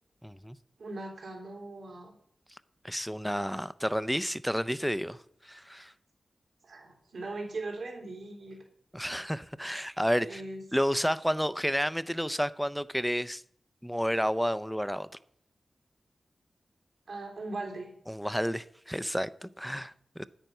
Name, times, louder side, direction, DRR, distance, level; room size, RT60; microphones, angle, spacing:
voice 1, 0.2-0.6 2.8-5.2 5.4-5.9 8.9-10.4 10.7-13.4 13.8-15.1 18.1-20.2, equal, ahead, 0.5 m, -31 dB
voice 2, 0.8-2.1 6.6-8.6 10.2-10.6 17.1-17.9, right 2 dB, 85° right, 3.5 m, -39 dB
9.1 x 9.0 x 5.4 m
wide cardioid pair, 75°, 0 cm